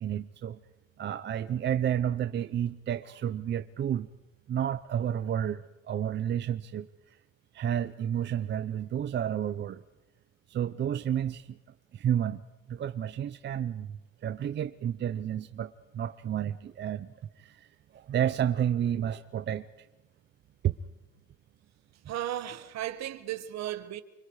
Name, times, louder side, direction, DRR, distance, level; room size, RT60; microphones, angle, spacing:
voice 1, 0.0-0.6 1.0-4.1 4.5-7.2 7.5-9.8 10.5-11.6 11.9-12.4 12.7-17.7 17.9-19.7 20.6-20.8, right 9 dB, 35° right, 0.7 m, -31 dB
voice 2, 22.1-24.0, right 12 dB, 60° right, 1.8 m, -35 dB
29.5 x 25.0 x 4.9 m
cardioid pair, 175°, 31 cm